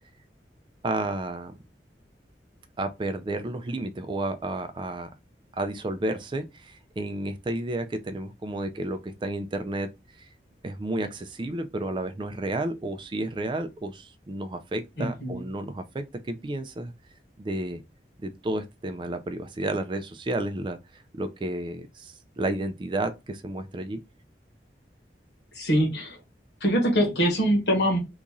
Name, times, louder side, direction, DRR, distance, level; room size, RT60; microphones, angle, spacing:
voice 1, 0.8-1.6 2.8-5.1 5.6-9.9 10.2-10.3 10.6-16.9 17.4-17.8 18.2-20.8 21.1-24.0, right 2 dB, 25° right, 0.3 m, -31 dB
voice 2, 15.0-15.4 25.5-26.2 26.6-28.0, equal, 70° left, 1.3 m, -23 dB
2.9 x 2.6 x 3.6 m
head